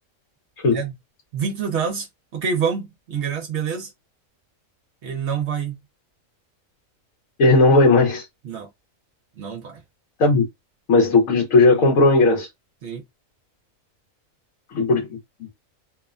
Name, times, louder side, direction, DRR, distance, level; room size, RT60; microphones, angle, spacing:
voice 1, 1.3-2.1 2.3-3.9 5.0-5.8 8.4-8.7 9.4-9.8 12.8-13.0, right 6 dB, 60° right, 0.9 m, -26 dB
voice 2, 7.4-8.2 10.2-10.4 10.9-12.5 14.7-15.2, left 3 dB, 75° left, 1.2 m, -16 dB
2.8 x 2.1 x 2.3 m
omnidirectional pair, 1.4 m